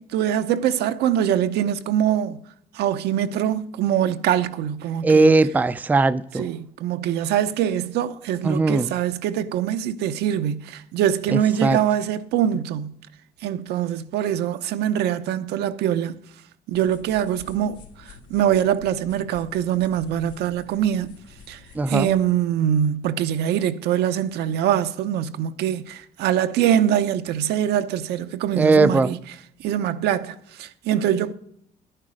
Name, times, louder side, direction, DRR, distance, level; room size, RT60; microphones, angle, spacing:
voice 1, 0.0-2.4 2.7-5.3 6.4-12.9 13.4-16.2 16.7-21.2 21.5-21.6 21.9-29.2 29.6-31.3, right 10 dB, 80° right, 0.7 m, -23 dB
voice 2, 5.0-6.5 8.4-8.9 11.3-11.8 21.7-22.1 28.5-29.1, right 3 dB, 10° right, 0.4 m, -19 dB
sound 1, 16.7-22.2, left 5 dB, 90° left, 2.6 m, -48 dB
11.5 x 10.0 x 5.0 m
cardioid pair, 110°, 17 cm